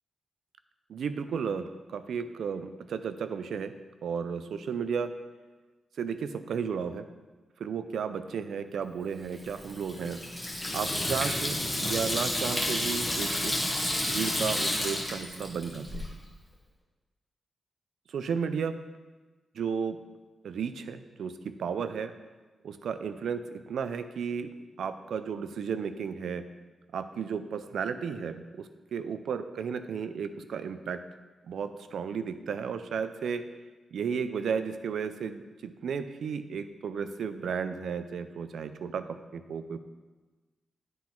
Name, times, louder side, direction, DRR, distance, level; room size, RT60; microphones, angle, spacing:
voice 1, 0.9-3.7 4.0-5.1 6.0-7.1 7.6-10.2 10.7-16.1 18.1-18.8 19.5-20.0 20.4-22.1 22.6-24.5 24.8-26.4 26.9-31.0 31.5-33.4 33.9-39.8, right 6 dB, 80° right, 11 dB, 0.4 m, -34 dB
Water tap faucet / Sink (filling or washing), 9.3-16.1, left 1 dB, 10° left, 1.2 m, -31 dB
9.5 x 3.8 x 4.4 m, 1.3 s
wide cardioid pair, 145°, 0 cm